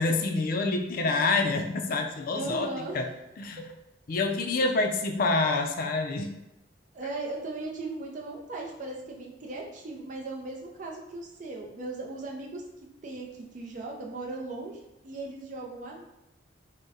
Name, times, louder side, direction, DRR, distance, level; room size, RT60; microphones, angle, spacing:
voice 1, 0.0-3.1 3.4-3.6 4.1-6.3, left 3 dB, 50° left, 5 dB, 0.4 m, -27 dB
voice 2, 2.3-3.1 4.6-4.8 6.9-12.6 13.0-16.0, right 2 dB, 45° right, 0 dB, 0.5 m, -38 dB
3.6 x 2.1 x 4.0 m, 0.91 s
head